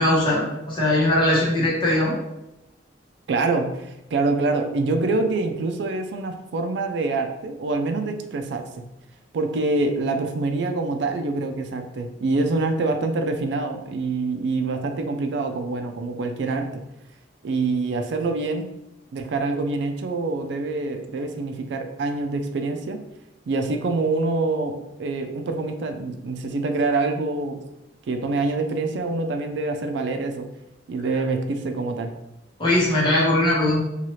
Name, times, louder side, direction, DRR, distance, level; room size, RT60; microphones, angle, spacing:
voice 1, 0.0-2.1 32.6-33.8, left 1 dB, 25° left, -7 dB, 1.0 m, -20 dB
voice 2, 3.3-8.9 9.3-16.8 17.4-18.7 19.1-23.0 23.5-27.6 28.1-30.5 30.9-32.1, right 3 dB, 70° right, 6 dB, 0.4 m, -25 dB
2.8 x 2.3 x 3.0 m, 0.90 s
head